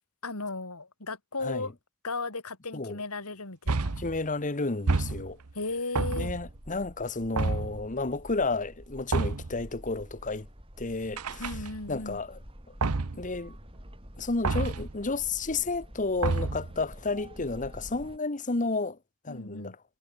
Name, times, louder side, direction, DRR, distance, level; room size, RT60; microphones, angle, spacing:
voice 1, 0.2-1.7 2.0-4.0 5.6-6.3 11.4-12.2 19.3-19.8, left 3 dB, 85° left, 3.6 m, -35 dB
voice 2, 1.4-1.7 2.7-3.0 4.0-5.4 6.1-10.5 10.8-11.5 11.9-12.4 13.1-13.6 14.2-19.0 19.2-19.8, left 3 dB, 35° left, 1.2 m, -31 dB
sound 1, 3.7-4.2 4.9-5.5 6.0-6.6 7.4-7.9 9.1-9.6 11.2-12.0 12.8-13.3 14.4-15.0 16.2-16.8, right 3 dB, 85° right, 1.0 m, -29 dB
luis Insight, 6.3-18.2, equal, 25° right, 7.7 m, -48 dB
head